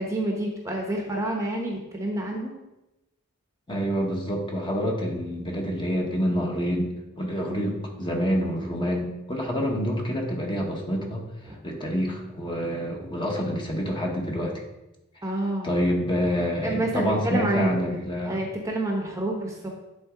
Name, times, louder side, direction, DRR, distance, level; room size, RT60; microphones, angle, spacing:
voice 1, 0.0-2.5 7.4-7.8 11.5-11.6 15.2-15.8 16.6-17.7 18.2-19.7, right 1 dB, 15° right, 0 dB, 0.9 m, -28 dB
voice 2, 3.7-11.2 11.6-14.5 15.6-18.4, equal, 25° left, 0 dB, 1.2 m, -27 dB
10.0 x 4.1 x 3.8 m, 0.97 s
head